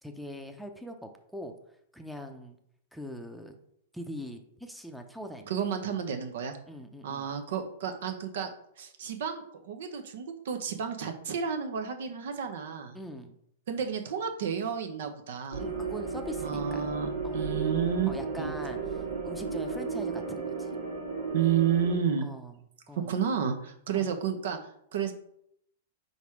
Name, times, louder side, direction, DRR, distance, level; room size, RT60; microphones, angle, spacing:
voice 1, 0.0-1.5 1.9-2.6 2.9-3.5 3.9-5.5 6.7-7.3 12.9-13.3 15.6-16.9 17.2-17.5 18.1-20.8 22.2-22.6 22.9-23.1 23.9-24.1, equal, ahead, 4 dB, 0.7 m, -42 dB
voice 2, 5.5-6.6 7.0-8.5 8.8-13.0 13.7-15.6 16.4-18.1 18.4-18.5 21.3-22.2 23.0-24.6 24.9-25.1, right 7 dB, 70° right, 6 dB, 1.0 m, -31 dB
sound 1, 15.5-21.9, right 4 dB, 85° right, 1.9 m, -34 dB
4.9 x 4.1 x 4.7 m, 0.71 s
hypercardioid pair, 115°, 0 cm